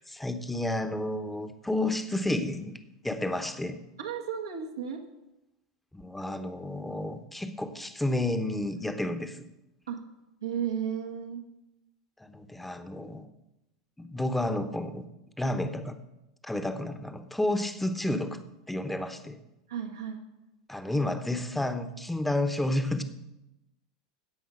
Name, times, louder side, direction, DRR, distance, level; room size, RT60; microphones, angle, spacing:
voice 1, 0.1-2.8 3.0-3.8 5.9-9.4 12.2-13.3 14.0-15.1 15.4-16.0 16.4-18.4 18.7-19.4 20.7-23.0, left 1 dB, 5° left, 9 dB, 1.1 m, -31 dB
voice 2, 4.0-5.0 9.9-10.0 10.4-11.4 19.7-20.2, right 8 dB, 80° right, 1 dB, 1.5 m, -34 dB
16.0 x 5.5 x 6.3 m, 0.95 s
figure-of-eight pair, 85°, 2 cm